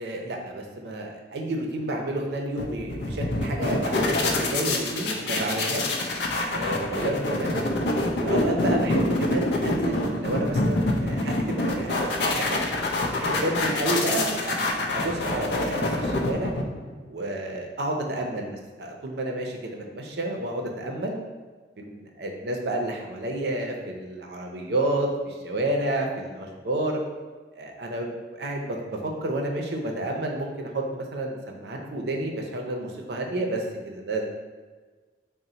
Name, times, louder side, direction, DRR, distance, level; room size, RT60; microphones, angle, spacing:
voice 1, 0.0-5.9 6.5-7.7 8.2-12.6 13.2-16.5 17.1-21.2 21.8-27.0 27.5-34.3, right 1 dB, 65° right, 1 dB, 0.5 m, -30 dB
sound 1, 2.6-16.9, left 2 dB, 70° left, 0.4 m, -26 dB
3.8 x 2.1 x 4.1 m, 1.4 s
head